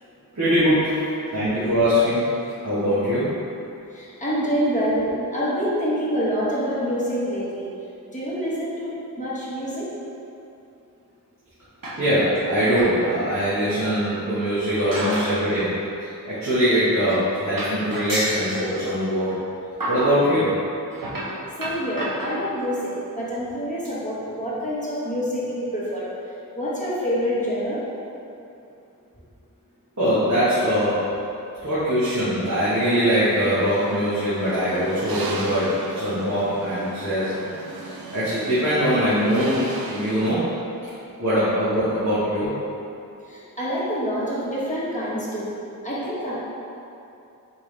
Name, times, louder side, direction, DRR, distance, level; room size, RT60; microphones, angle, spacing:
voice 1, 0.3-1.0 1.3-2.3 2.6-3.4 12.0-15.7 16.0-19.3 19.9-20.5 30.0-31.1 31.6-37.3 38.1-40.5 41.2-42.5, equal, 50° right, -14 dB, 1.2 m, -22 dB
voice 2, 3.9-5.0 5.3-7.6 8.1-9.9 21.6-26.0 26.5-27.8 43.3-45.5 45.8-46.3, equal, 20° left, -9 dB, 1.3 m, -26 dB
sound 1, 11.8-12.4 12.7-13.0 13.4-13.5 14.4-15.4 15.7-15.9 16.7-16.8 17.1-17.3 17.6-18.7 19.3-19.4 19.8-20.2 20.9-22.7 23.4-23.5 23.8-23.9 24.3-24.4 24.6-24.7, right 1 dB, 70° right, 0.8 m, -31 dB
sound 2, 32.5-40.3, right 3 dB, 85° right, 0.5 m, -36 dB
4.6 x 3.3 x 3.2 m, 2.8 s
wide cardioid pair, 45°, 35 cm